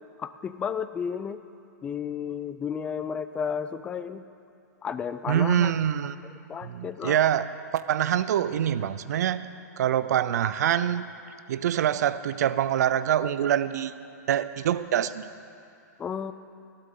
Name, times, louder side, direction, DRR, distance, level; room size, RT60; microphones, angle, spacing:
voice 1, 0.2-1.4 1.8-4.3 4.8-5.7 6.5-7.2 16.0-16.3, left 7 dB, 10° left, 12 dB, 0.4 m, -32 dB
voice 2, 5.3-6.2 6.6-7.5 7.7-9.4 9.8-11.1 11.5-13.9 14.3-15.3, right 10 dB, 65° right, 15 dB, 0.6 m, -25 dB
19.0 x 13.5 x 3.8 m, 2.6 s
hypercardioid pair, 155°, 10 cm